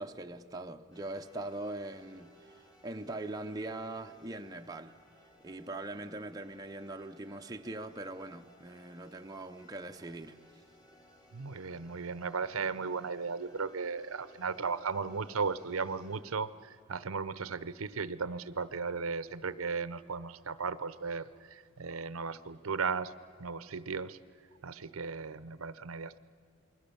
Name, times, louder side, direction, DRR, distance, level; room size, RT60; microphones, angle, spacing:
voice 1, 0.0-5.0 5.4-10.4, right 2 dB, 15° right, 0.6 m, -41 dB
sound 1, 0.9-16.2, right 1 dB, 20° left, 2.7 m, -60 dB
voice 2, 11.3-23.1 23.4-24.2 24.6-26.2, right 5 dB, 75° right, 0.7 m, -36 dB
28.5 x 21.5 x 7.0 m
head